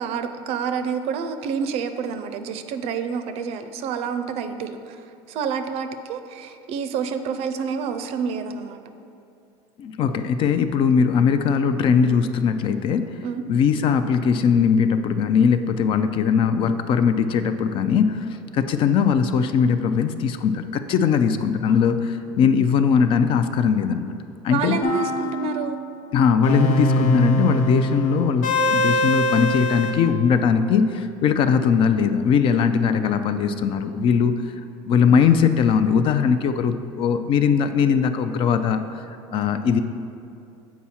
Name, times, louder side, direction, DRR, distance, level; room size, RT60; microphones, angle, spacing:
voice 1, 0.0-5.0 5.3-8.8 13.2-13.4 21.8-22.1 24.5-25.8, right 6 dB, 60° right, 9 dB, 0.5 m, -28 dB
voice 2, 9.8-13.2 13.5-18.3 18.5-24.2 24.4-24.8 26.1-34.4 34.8-39.1 39.3-39.8, left 6 dB, 50° left, 10 dB, 0.4 m, -20 dB
sound 1, 24.8-25.7 26.4-29.9, left 1 dB, 80° left, 0.9 m, -22 dB
7.2 x 4.7 x 4.2 m, 2.6 s
supercardioid pair, 120°, 12 cm